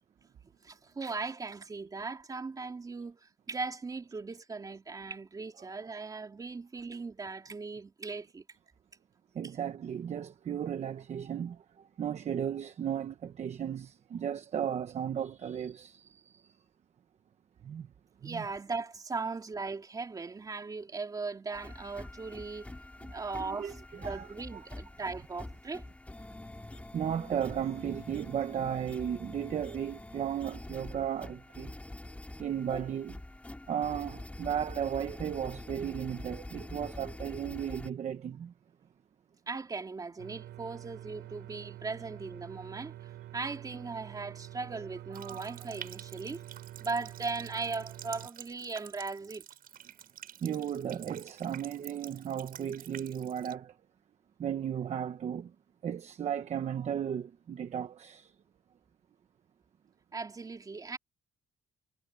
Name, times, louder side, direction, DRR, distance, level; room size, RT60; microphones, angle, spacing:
voice 1, 0.6-8.4 18.2-22.7 23.1-25.8 39.5-46.4 46.8-49.4 60.1-61.0, right 4 dB, 20° right, 3.4 m, -38 dB
voice 2, 9.3-16.6 17.6-17.9 18.2-18.4 23.3-24.7 26.9-31.7 32.4-33.2 33.7-38.5 45.1-45.6 50.4-53.8 54.4-55.5 55.8-58.3, right 9 dB, 40° right, 1.1 m, -35 dB
sound 1, 21.5-37.9, left 1 dB, 10° left, 2.4 m, -45 dB
sound 2, 40.2-48.3, right 13 dB, 75° right, 3.7 m, -47 dB
Water tap faucet, 45.1-53.5, right 10 dB, 55° right, 7.7 m, -49 dB
cardioid pair, 170°, 18 cm